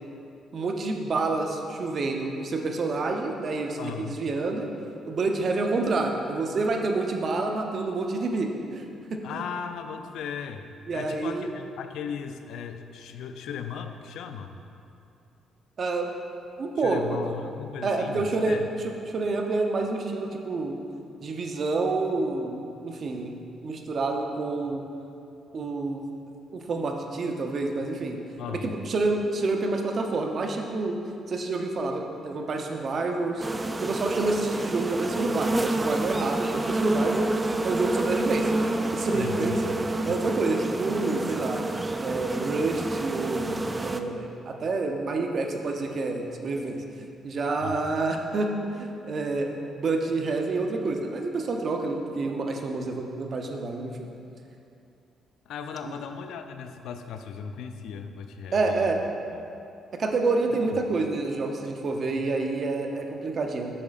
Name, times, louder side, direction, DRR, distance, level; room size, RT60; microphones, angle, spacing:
voice 1, 0.5-4.7 5.1-9.2 10.9-11.5 15.8-16.1 16.6-17.2 17.8-18.6 18.8-20.8 21.2-23.4 23.6-24.8 25.5-26.0 26.5-28.2 28.5-31.0 31.3-33.5 33.8-37.3 37.6-38.5 38.9-41.6 42.0-54.1 58.5-59.0 60.0-63.7, right 3 dB, 50° right, 3 dB, 0.7 m, -28 dB
voice 2, 3.8-4.2 9.2-10.7 10.9-14.5 16.8-18.7 28.4-28.7 39.1-39.6 40.1-40.2 47.6-47.9 55.5-59.5, left 7 dB, 80° left, 7 dB, 0.4 m, -37 dB
sound 1, 33.4-44.0, right 2 dB, 20° right, 0.3 m, -28 dB
8.6 x 6.1 x 2.4 m, 2.6 s
cardioid pair, 90°, 0 cm